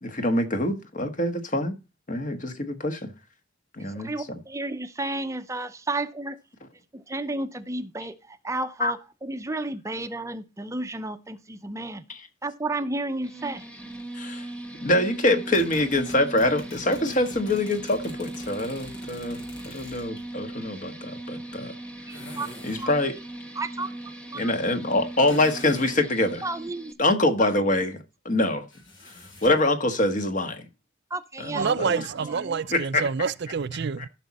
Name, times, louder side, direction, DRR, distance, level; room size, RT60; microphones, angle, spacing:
voice 1, 0.0-1.7 2.1-3.1 3.7-4.1 8.8-8.9 12.1-12.2 14.1-14.5 14.8-19.4 19.6-21.7 22.6-23.2 24.3-26.4 27.0-28.7 29.4-30.7 31.4-31.9 32.7-33.1, left 1 dB, 45° left, 1.5 m, -25 dB
voice 2, 3.9-6.4 6.9-12.1 12.4-13.6 22.1-22.5 22.8-22.9 23.6-23.9 24.3-24.5 26.4-26.9 31.1-32.6, right 2 dB, 15° right, 0.6 m, -32 dB
sound 1, 13.2-26.9, right 1 dB, 5° left, 1.5 m, -39 dB
sound 2, 15.2-20.3 22.1-22.9 25.3-26.0 28.7-29.7, left 1 dB, 80° left, 5.5 m, -44 dB
voice 3, 31.5-34.1, right 5 dB, 60° right, 0.5 m, -27 dB
14.0 x 6.2 x 4.2 m
head